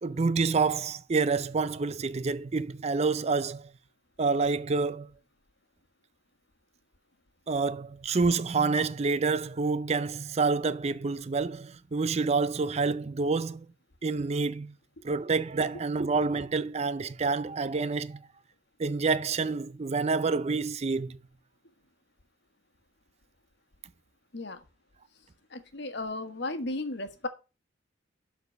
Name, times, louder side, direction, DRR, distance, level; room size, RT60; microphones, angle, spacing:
voice 1, 0.0-3.7 4.2-5.1 7.5-13.7 14.0-14.7 15.0-18.2 18.8-21.2, right 4 dB, 35° right, 0.4 m, -28 dB
voice 2, 25.5-27.3, left 2 dB, 60° left, 1.3 m, -35 dB
12.0 x 4.1 x 5.3 m
head